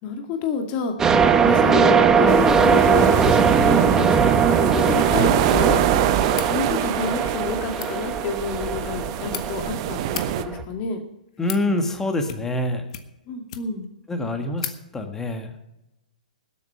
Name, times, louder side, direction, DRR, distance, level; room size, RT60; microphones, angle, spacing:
voice 1, 0.0-1.2 1.4-5.8 6.5-11.0 13.3-13.9, left 5 dB, 30° left, 4 dB, 2.1 m, -28 dB
sound 1, 1.0-10.6, right 6 dB, 15° right, 0.9 m, -20 dB
sound 2, 2.3-10.4, right 12 dB, 40° right, 0.8 m, -25 dB
sound 3, 6.3-6.6 7.6-7.9 8.9-9.4 10.0-10.3 11.1-11.7 12.2-12.6 12.9-13.9 14.2-14.3 14.6-14.8, left 10 dB, 50° left, 1.4 m, -35 dB
voice 2, 11.4-12.8 14.1-15.5, left 1 dB, 10° left, 5 dB, 1.8 m, -26 dB
19.0 x 8.3 x 5.6 m, 0.91 s
hypercardioid pair, 125°, 5 cm